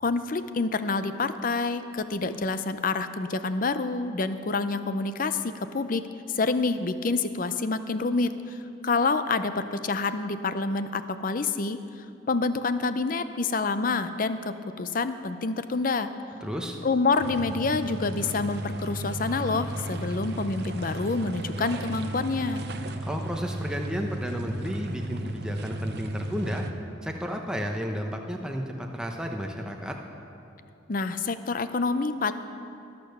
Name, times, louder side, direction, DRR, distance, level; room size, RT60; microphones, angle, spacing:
voice 1, 0.0-6.0 6.3-8.6 8.8-11.8 12.3-16.1 16.8-22.7 30.9-32.3, left 3 dB, 45° left, 11 dB, 0.5 m, -27 dB
voice 2, 16.4-16.8 23.0-26.6 27.0-29.9, equal, 5° right, 2 dB, 0.9 m, -32 dB
sound 1, 17.2-26.7, right 1 dB, 55° right, 0.7 m, -34 dB
20.5 x 6.9 x 6.6 m, 2.7 s
head